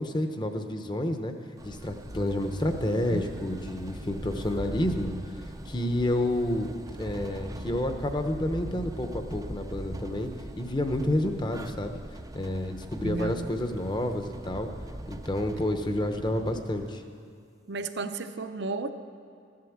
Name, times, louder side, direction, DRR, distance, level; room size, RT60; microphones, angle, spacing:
voice 1, 0.0-1.3 1.6-5.1 5.6-6.7 7.0-10.3 10.6-12.0 12.3-14.7 15.1-17.0, left 1 dB, 25° left, 6 dB, 0.9 m, -29 dB
sound 1, 1.6-16.9, right 1 dB, 20° right, 0.5 m, -41 dB
voice 2, 13.0-13.5 17.7-18.9, right 3 dB, 60° right, 10 dB, 0.7 m, -33 dB
14.5 x 11.5 x 7.3 m, 2.3 s
head